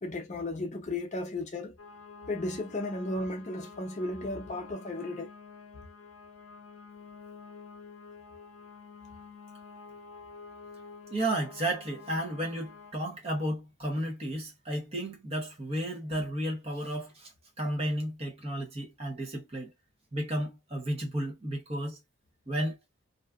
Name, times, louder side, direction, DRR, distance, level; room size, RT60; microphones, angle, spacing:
voice 1, 0.0-1.8 2.3-5.3, left 2 dB, 35° left, 0.5 m, -34 dB
sound 1, 1.8-12.9, left 5 dB, 85° left, 0.5 m, -49 dB
voice 2, 11.1-17.3 17.6-19.7 20.1-22.0 22.5-22.8, right 1 dB, 30° right, 0.8 m, -33 dB
2.6 x 2.3 x 2.4 m
head